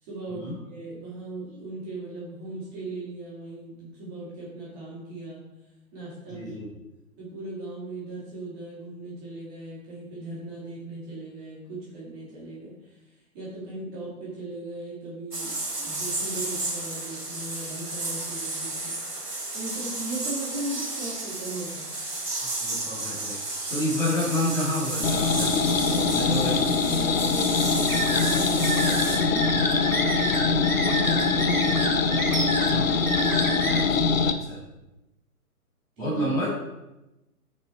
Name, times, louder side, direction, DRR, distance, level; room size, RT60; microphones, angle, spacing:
voice 1, 0.0-5.4 5.9-6.6 7.2-13.0 13.3-19.0 19.5-21.9 25.8-33.2 36.0-36.2, right 2 dB, 20° right, -7 dB, 2.7 m, -38 dB
voice 2, 6.3-6.7 22.4-23.4 23.7-25.5 26.3-26.6 32.7-32.9 33.7-33.8 34.2-34.6 36.0-36.5, left 1 dB, 5° left, -9 dB, 1.8 m, -29 dB
sound 1, 15.3-29.2, right 2 dB, 90° right, 1.6 m, -32 dB
sound 2, 25.0-34.3, left 4 dB, 60° left, 0.7 m, -23 dB
sound 3, 27.9-33.8, right 4 dB, 65° right, 1.3 m, -30 dB
6.3 x 5.4 x 4.2 m, 0.96 s
figure-of-eight pair, 135°, 46 cm